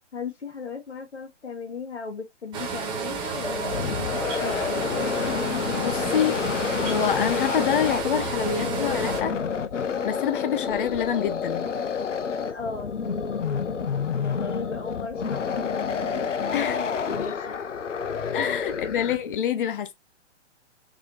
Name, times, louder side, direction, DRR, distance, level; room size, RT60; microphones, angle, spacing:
voice 1, 0.1-5.1 12.5-17.6 18.1-18.7, left 4 dB, 65° left, 1.8 m, -37 dB
sound 1, 2.5-9.2, right 6 dB, 15° right, 0.7 m, -32 dB
sound 2, 3.3-19.4, left 6 dB, 90° left, 0.7 m, -29 dB
voice 2, 5.8-6.4 6.8-9.4 10.0-11.7 16.5-16.8 18.3-19.9, left 8 dB, 45° left, 0.8 m, -26 dB
4.0 x 2.9 x 3.0 m
figure-of-eight pair, 130°, 36 cm